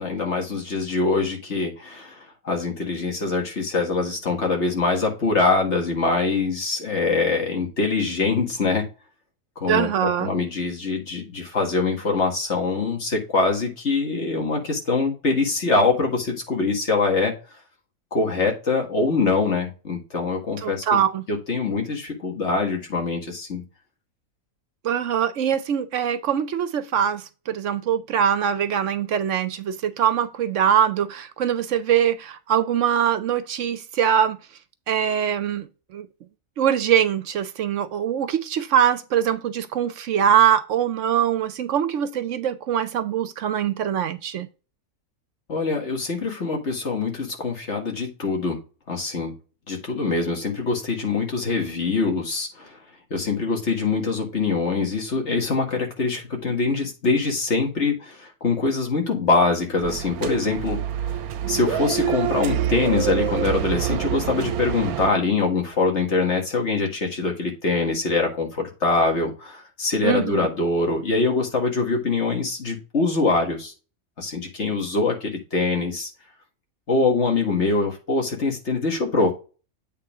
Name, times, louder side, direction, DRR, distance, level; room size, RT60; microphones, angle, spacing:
voice 1, 0.0-2.2 2.4-8.8 9.6-17.3 18.1-20.8 21.3-23.6 45.5-48.6 48.9-49.3 49.7-52.8 53.1-60.8 61.5-73.7 74.2-76.1 76.9-79.3, left 3 dB, 50° left, 2.2 m, -23 dB
voice 2, 9.7-10.3 20.6-21.2 24.8-34.4 34.9-35.7 35.9-36.1 36.6-44.5 70.0-70.3, right 9 dB, 65° right, 0.9 m, -22 dB
sound 1, 59.8-65.1, right 11 dB, 85° right, 1.1 m, -26 dB
8.1 x 3.6 x 4.7 m
omnidirectional pair, 1.5 m